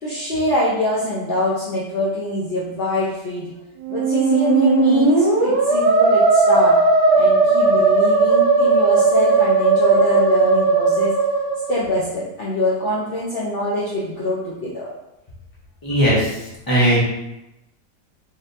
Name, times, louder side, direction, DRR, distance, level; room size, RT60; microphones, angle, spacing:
voice 1, 0.0-3.5 3.9-6.7 7.1-11.1 11.7-14.9, left 1 dB, 60° left, -7 dB, 0.6 m, -24 dB
Musical instrument, 3.8-11.9, right 3 dB, 70° right, 1.3 m, -16 dB
voice 2, 15.8-17.0, right 1 dB, 15° left, -6 dB, 0.9 m, -18 dB
4.0 x 3.6 x 2.6 m, 0.94 s
omnidirectional pair, 1.8 m